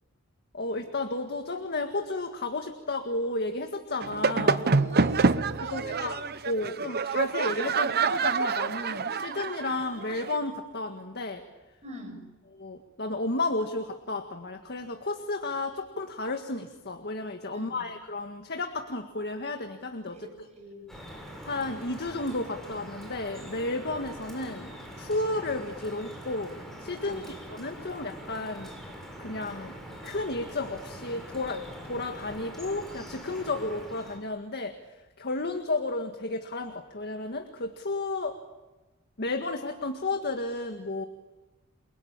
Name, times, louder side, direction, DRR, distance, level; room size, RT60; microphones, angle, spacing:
voice 1, 0.5-4.7 5.6-6.2 6.5-11.4 12.5-20.3 21.4-26.5 26.8-28.7 29.2-29.7 30.0-34.7 35.2-38.4 39.2-41.0, left 2 dB, 50° left, 5 dB, 1.8 m, -32 dB
sound 1, 4.0-10.4, right 4 dB, 50° right, 0.9 m, -27 dB
voice 2, 4.7-6.1 11.8-12.2 17.5-17.8 20.1-20.9 27.0-27.3, right 1 dB, 35° right, 1 dB, 6.9 m, -44 dB
Drip, 20.9-34.2, equal, ahead, 7.2 m, -43 dB
29.0 x 22.5 x 8.8 m, 1.1 s
head